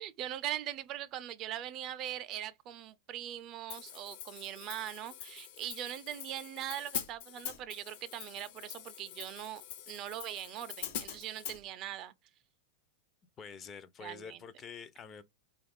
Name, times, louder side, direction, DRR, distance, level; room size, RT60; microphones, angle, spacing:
voice 1, 0.0-12.1 14.0-14.4, right 12 dB, 40° right, 0.4 m, -41 dB
Hi-hat, 3.7-11.6, left 9 dB, 65° left, 0.8 m, -44 dB
voice 2, 13.4-15.2, left 6 dB, 25° left, 0.5 m, -47 dB
4.0 x 2.3 x 3.5 m
supercardioid pair, 130°, 0 cm